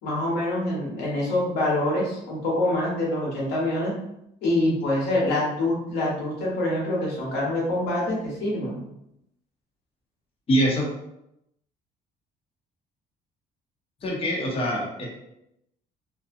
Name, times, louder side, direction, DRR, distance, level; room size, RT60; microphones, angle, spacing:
voice 1, 0.0-3.9 4.4-8.8, left 1 dB, 85° left, -4 dB, 1.1 m, -25 dB
voice 2, 10.5-10.9 14.0-15.1, equal, 35° left, -3 dB, 0.7 m, -24 dB
2.7 x 2.1 x 2.6 m, 0.82 s
cardioid pair, 110°, 17 cm